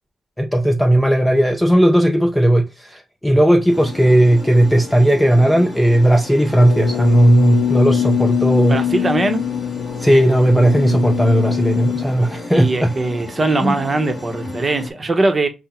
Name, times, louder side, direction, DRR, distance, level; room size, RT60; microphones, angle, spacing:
voice 1, 0.4-8.8 10.0-12.9 13.6-13.8, right 1 dB, 5° left, 0.4 m, -15 dB
sound 1, 3.7-14.9, left 3 dB, 25° left, 1.1 m, -33 dB
sound 2, 6.6-12.0, left 10 dB, 90° left, 0.4 m, -22 dB
voice 2, 8.7-9.4 12.5-15.5, right 2 dB, 20° right, 0.7 m, -20 dB
5.8 x 2.1 x 4.2 m
wide cardioid pair, 170°, 0 cm